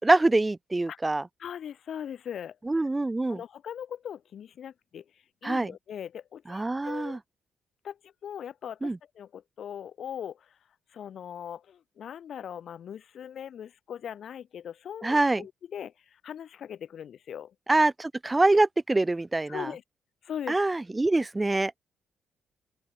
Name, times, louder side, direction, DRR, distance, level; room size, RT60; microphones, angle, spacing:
voice 1, 0.0-1.2 2.7-3.4 5.4-5.7 6.5-7.2 8.8-9.0 15.0-15.4 17.7-19.7 20.5-21.7, right 2 dB, 15° right, 0.3 m, -24 dB
voice 2, 1.4-2.9 3.3-5.0 5.4-7.2 7.8-10.6 10.9-17.5 19.5-19.8 20.2-20.6, left 9 dB, 60° left, 1.9 m, -40 dB
open air
cardioid pair, 90°, 0 cm